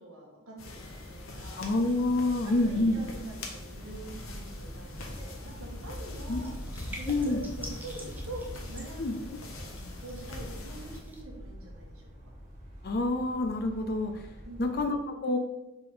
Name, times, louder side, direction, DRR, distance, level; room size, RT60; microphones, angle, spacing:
voice 1, 0.0-1.6 2.4-6.5 7.0-9.3 9.5-9.7 10.0-12.3 14.4-14.7, right 2 dB, 85° right, -1 dB, 1.6 m, -45 dB
sound 1, 0.6-11.0, left 2 dB, 75° left, 1.0 m, -43 dB
sound 2, 1.3-14.9, equal, 30° right, 1.3 m, -46 dB
voice 2, 1.6-3.0 6.3-6.4 7.0-7.4 9.0-9.2 12.8-14.3 14.6-15.4, left 2 dB, 50° left, 5 dB, 0.5 m, -27 dB
sound 3, 6.0-11.2, right 1 dB, 10° right, 0.7 m, -49 dB
5.1 x 4.8 x 3.9 m, 1.1 s
head